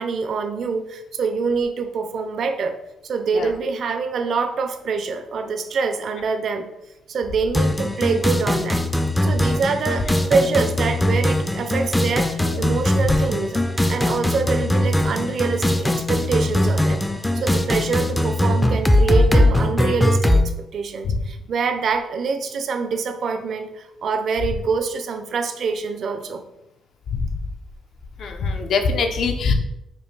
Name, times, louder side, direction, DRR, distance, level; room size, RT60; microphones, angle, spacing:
voice 1, 0.0-2.8 3.0-6.7 7.1-8.8 9.2-17.0 17.3-26.4, right 5 dB, 60° right, 6 dB, 0.5 m, -25 dB
sound 1, 7.5-20.5, left 1 dB, 10° left, 0.4 m, -20 dB
voice 2, 28.2-29.5, left 4 dB, 65° left, 4 dB, 0.6 m, -22 dB
5.2 x 2.2 x 3.2 m, 0.89 s
cardioid pair, 90°, 0 cm